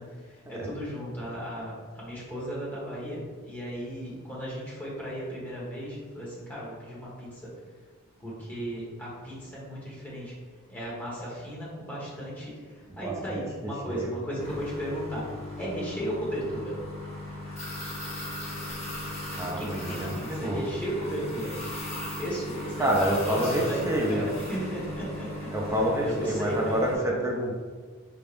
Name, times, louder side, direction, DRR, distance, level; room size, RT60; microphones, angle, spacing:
voice 1, 0.0-7.5 8.2-10.3 10.7-15.2 15.6-16.7 19.6-21.5 22.2-25.3 26.0-26.8, equal, 10° left, -7 dB, 1.3 m, -35 dB
voice 2, 12.9-14.1 19.3-20.6 22.8-24.3 25.5-27.6, right 1 dB, 15° right, -2 dB, 0.5 m, -28 dB
sound 1, 14.4-27.0, left 1 dB, 30° left, 0.9 m, -37 dB
4.5 x 3.4 x 2.5 m, 1.5 s
head